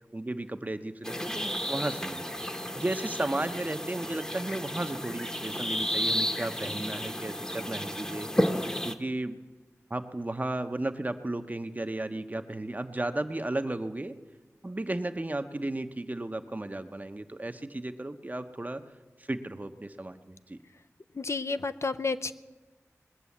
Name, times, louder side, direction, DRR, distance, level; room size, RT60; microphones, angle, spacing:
voice 1, 0.1-2.3 2.8-8.3 8.8-9.4 9.9-14.1 14.6-18.8 19.3-20.6, right 2 dB, 30° right, 9 dB, 0.8 m, -34 dB
sound 1, 1.0-8.9, equal, 10° left, 1.0 m, -32 dB
voice 2, 21.2-22.3, left 4 dB, 60° left, 9 dB, 0.5 m, -31 dB
20.5 x 6.9 x 8.4 m, 1.2 s
wide cardioid pair, 65°, 6 cm